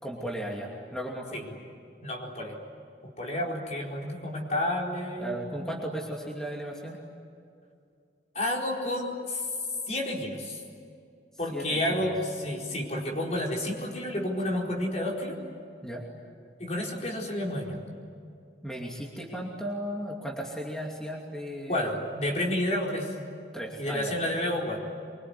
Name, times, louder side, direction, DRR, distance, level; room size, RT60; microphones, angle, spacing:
voice 1, 0.0-1.4 5.2-7.0 11.5-12.1 15.8-16.0 18.6-22.0 23.5-24.1, equal, 5° left, -2 dB, 2.7 m, -36 dB
voice 2, 2.0-2.6 3.2-5.6 8.3-9.4 9.9-10.6 11.4-15.4 16.6-17.8 21.7-23.1 23.8-24.8, left 1 dB, 40° left, -1 dB, 4.4 m, -30 dB
24.5 x 24.0 x 9.7 m, 2.4 s
head